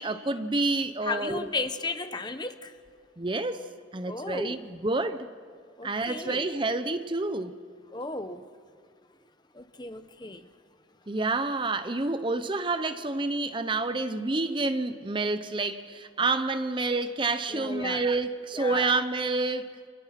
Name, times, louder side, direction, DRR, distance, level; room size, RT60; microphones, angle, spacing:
voice 1, 0.0-1.5 3.2-5.3 5.8-7.5 11.1-19.7, right 3 dB, 25° right, 0.7 m, -28 dB
voice 2, 1.0-2.7 4.1-4.6 5.8-6.5 7.9-8.4 9.5-10.5 17.5-18.0 18.5-18.9, left 3 dB, 20° left, 0.9 m, -35 dB
28.5 x 27.0 x 5.9 m
head